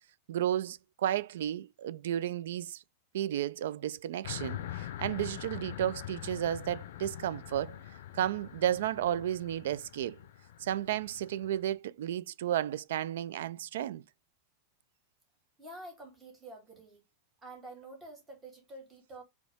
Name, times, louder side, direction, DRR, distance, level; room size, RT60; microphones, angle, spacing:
voice 1, 0.3-2.8 3.1-7.8 8.1-10.2 10.6-14.0, right 11 dB, 80° right, 0.3 m, -33 dB
sound 1, 4.2-11.7, left 12 dB, 70° left, 0.4 m, -44 dB
voice 2, 15.6-17.0 17.4-19.2, right 2 dB, 10° right, 1.4 m, -48 dB
4.1 x 2.9 x 3.4 m
supercardioid pair, 170°, 0 cm